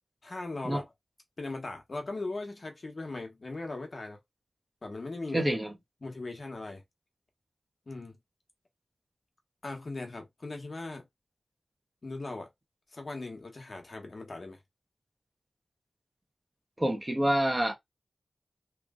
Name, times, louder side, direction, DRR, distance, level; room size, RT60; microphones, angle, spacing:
voice 1, 0.2-0.8 1.4-4.2 4.8-5.5 6.0-6.8 7.9-8.2 9.6-11.1 12.0-12.5 12.9-14.6, left 2 dB, 50° left, 1.3 m, -39 dB
voice 2, 5.3-5.7 16.8-17.8, right 1 dB, 20° right, 1.1 m, -27 dB
3.3 x 2.7 x 3.7 m
wide cardioid pair, 70°, 0 cm